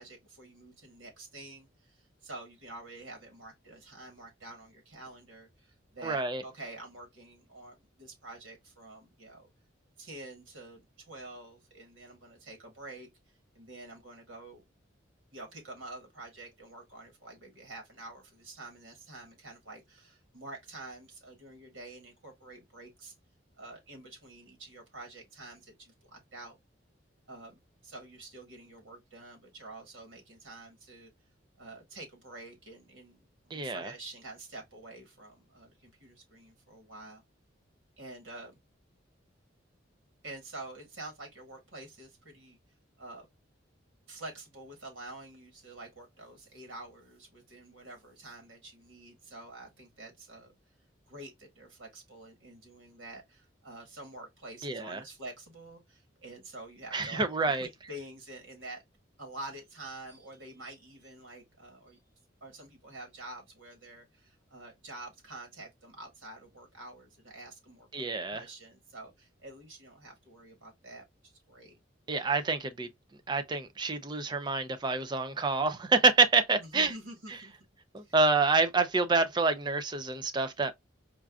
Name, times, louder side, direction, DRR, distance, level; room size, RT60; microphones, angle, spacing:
voice 1, 0.0-9.5 10.0-13.1 13.6-14.7 15.3-23.1 23.6-26.6 27.3-31.1 31.6-37.2 38.0-38.6 40.2-42.6 43.0-43.3 44.1-50.5 51.1-58.8 59.2-62.0 62.4-71.8 76.6-77.5 78.0-78.2, right 2 dB, 80° right, 1.7 m, -48 dB
voice 2, 6.0-6.4 33.5-33.9 54.6-55.0 56.9-57.7 67.9-68.4 72.1-72.9 73.3-76.9 77.9-80.7, right 3 dB, 25° right, 0.4 m, -27 dB
4.5 x 2.4 x 2.3 m
head